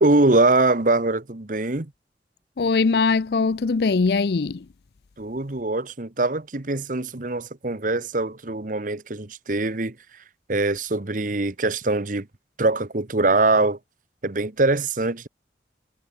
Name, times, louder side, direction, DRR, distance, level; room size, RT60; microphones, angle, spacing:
voice 1, 0.0-1.9 5.2-10.0 10.5-12.3 12.6-13.8 14.2-15.3, right 2 dB, 45° right, 1.2 m, -22 dB
voice 2, 2.6-4.6, left 4 dB, 60° left, 0.5 m, -21 dB
head